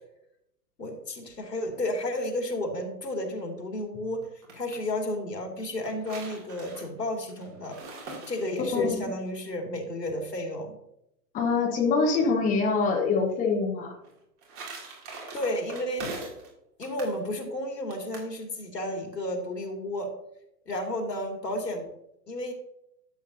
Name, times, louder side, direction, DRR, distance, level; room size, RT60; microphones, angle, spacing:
voice 1, 0.8-4.3 4.5-7.8 8.3-10.8 15.3-16.1 16.8-20.1 20.7-21.9 22.3-22.5, left 1 dB, 75° left, 3 dB, 2.5 m, -32 dB
sound 1, 4.2-4.8 5.6-8.9 14.0-16.5 16.8-17.2 17.9-18.3, right 3 dB, 25° right, 2.7 m, -42 dB
voice 2, 8.7-9.1 11.3-14.0, left 4 dB, 15° left, 1 dB, 1.3 m, -25 dB
12.5 x 7.8 x 2.7 m, 0.80 s
figure-of-eight pair, 110°, 50 cm